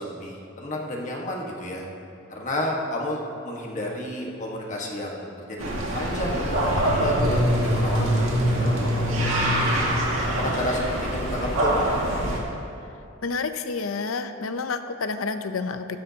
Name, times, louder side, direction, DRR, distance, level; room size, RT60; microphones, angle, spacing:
voice 1, 0.0-1.9 2.3-5.6 5.9-9.8 10.3-11.8, left 1 dB, 35° left, -1 dB, 1.5 m, -31 dB
sound 1, 5.6-12.4, right 1 dB, 80° right, 2.0 m, -24 dB
voice 2, 13.2-16.0, left 4 dB, 80° left, 9 dB, 0.6 m, -29 dB
15.5 x 12.0 x 2.9 m, 2.7 s
head